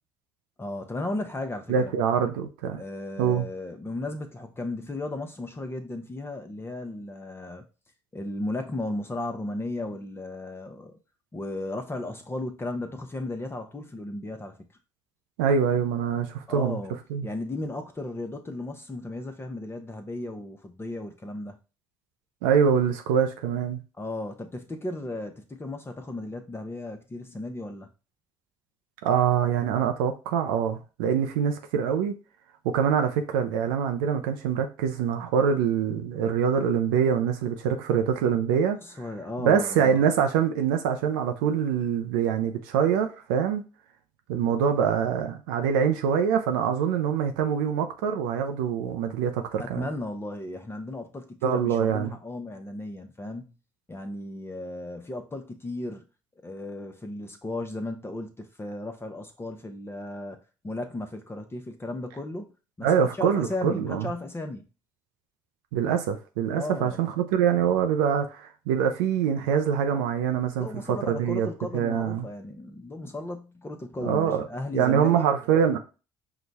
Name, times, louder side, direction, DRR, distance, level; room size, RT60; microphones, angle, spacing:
voice 1, 0.6-1.9 2.7-7.6 8.1-11.0 11.3-14.6 16.5-16.9 17.2-21.6 24.0-27.9 38.8-39.9 49.6-53.5 53.9-56.1 56.4-60.4 60.6-62.5 62.8-64.7 66.5-67.0 70.6-75.2, left 2 dB, 20° left, 0.8 m, -35 dB
voice 2, 1.7-2.8 3.2-3.5 15.4-16.8 17.1-17.3 22.4-23.8 29.0-32.1 32.6-38.8 39.4-43.6 44.3-49.9 51.4-52.1 62.8-64.1 65.7-72.2 74.0-74.5 74.7-75.8, right 7 dB, 90° right, 0.5 m, -24 dB
4.8 x 2.3 x 4.0 m
supercardioid pair, 65°, 11 cm